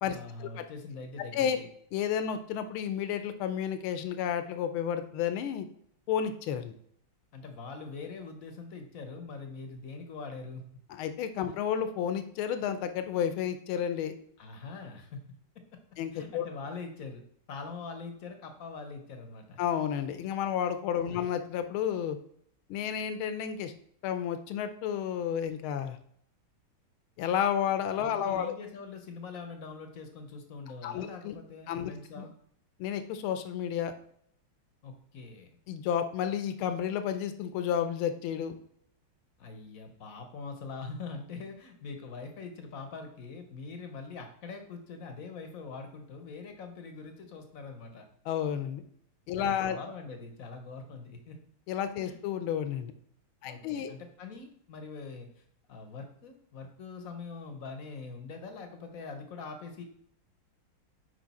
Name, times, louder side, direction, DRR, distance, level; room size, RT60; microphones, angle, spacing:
voice 1, 0.1-1.7 7.3-10.6 14.4-15.4 16.1-17.2 17.5-19.6 21.0-21.3 28.1-32.3 34.8-35.6 39.4-48.0 49.4-51.4 52.0-52.2 53.4-55.4 55.7-59.8, left 4 dB, 55° left, 6 dB, 1.0 m, -43 dB
voice 2, 1.9-5.7 6.1-6.7 10.9-14.1 16.0-16.4 19.6-22.2 22.7-23.7 24.0-26.0 27.2-28.5 30.8-31.3 31.7-31.9 32.2-32.3 32.8-33.9 35.7-38.6 48.3-48.8 49.3-49.8 51.7-52.9 53.4-53.9, left 9 dB, 80° left, 9 dB, 1.5 m, -31 dB
6.2 x 5.0 x 4.1 m, 0.66 s
omnidirectional pair, 2.3 m